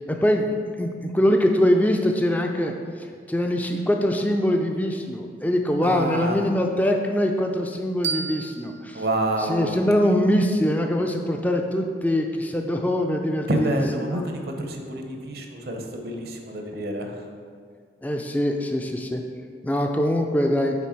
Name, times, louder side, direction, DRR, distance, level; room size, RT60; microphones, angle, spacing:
voice 1, 0.1-0.5 0.8-2.7 3.3-9.0 9.4-13.8 14.1-14.2 18.0-19.2 19.6-20.7, left 1 dB, 10° left, 3 dB, 0.3 m, -23 dB
voice 2, 5.8-6.4 8.9-9.7 13.5-17.2, right 1 dB, 60° right, 3 dB, 0.7 m, -27 dB
sound 1, 8.0-10.8, right 6 dB, 80° right, 0.4 m, -35 dB
5.9 x 3.9 x 4.4 m, 2.1 s
head